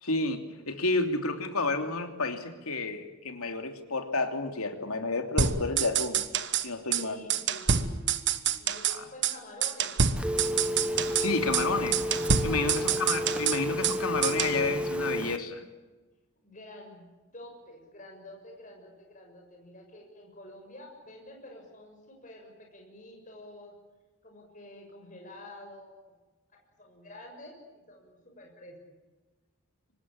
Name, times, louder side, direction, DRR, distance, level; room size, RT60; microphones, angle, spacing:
voice 1, 0.0-6.2 6.6-7.2 8.9-9.1 11.2-12.0 12.4-15.6, left 3 dB, 80° left, 6 dB, 3.0 m, -30 dB
sound 1, 5.4-6.7 6.9-7.0 7.3-9.0 9.2-9.4 9.6-11.3 11.5-11.7 11.9-14.0 14.2-14.6, right 7 dB, 50° right, 1.3 m, -27 dB
voice 2, 7.0-10.8 12.8-13.3 16.4-23.7 24.2-26.0 26.8-28.8, left 1 dB, 35° left, 1 dB, 6.5 m, -49 dB
Telephone, 10.2-15.4, equal, 5° right, 1.0 m, -31 dB
25.5 x 19.5 x 8.6 m, 1.2 s
head